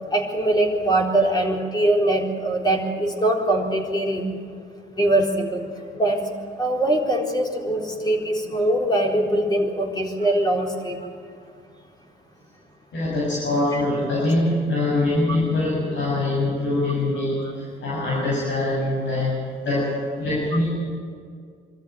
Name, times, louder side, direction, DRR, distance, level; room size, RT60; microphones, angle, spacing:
voice 1, 0.1-4.2 5.0-5.6 5.9-6.2 6.6-11.0 13.7-13.8 17.4-17.5, right 1 dB, 20° left, 0 dB, 4.1 m, -22 dB
voice 2, 12.9-20.7, left 2 dB, 70° left, -6 dB, 7.1 m, -23 dB
24.0 x 13.5 x 9.0 m, 2.2 s
cardioid pair, 90°, 20 cm